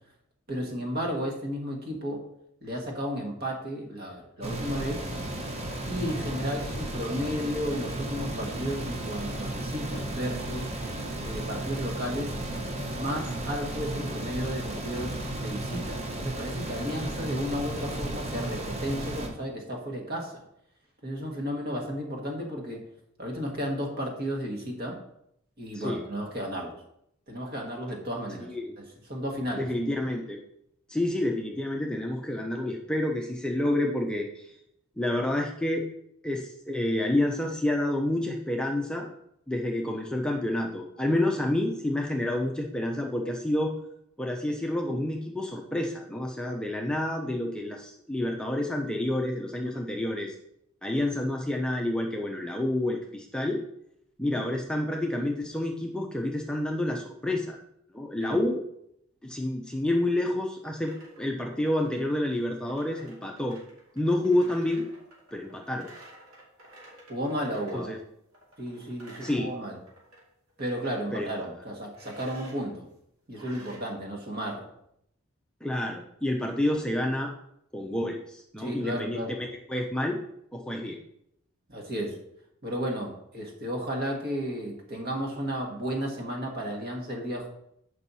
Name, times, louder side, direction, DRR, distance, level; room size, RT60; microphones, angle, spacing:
voice 1, 0.5-2.2 2.6-5.0 5.9-10.7 11.2-12.4 12.9-20.4 21.0-22.8 23.2-25.0 25.6-26.8 27.3-28.8 29.1-29.7 49.6-49.8 58.2-58.4 67.1-67.9 68.6-69.8 70.6-72.9 73.3-74.7 78.6-79.4 81.7-82.2 82.6-87.5, equal, 45° right, 1 dB, 1.5 m, -33 dB
sound 1, 4.4-19.3, right 1 dB, 30° right, 1.0 m, -34 dB
voice 2, 25.7-26.1 28.4-28.8 29.5-30.4 30.9-34.5 35.0-35.8 36.2-39.1 39.5-43.7 44.2-50.3 50.8-53.6 54.2-57.6 57.9-58.6 59.2-63.6 64.0-64.9 65.3-65.9 67.7-68.0 69.2-69.5 71.1-71.3 75.6-77.3 77.7-80.2 80.5-81.0, left 1 dB, 5° left, 0 dB, 0.5 m, -29 dB
sound 2, 60.5-67.9 68.3-70.2 70.5-71.0 71.9-72.7 73.3-73.8, right 1 dB, 80° right, 2.6 m, -52 dB
7.6 x 5.4 x 4.1 m, 0.76 s
head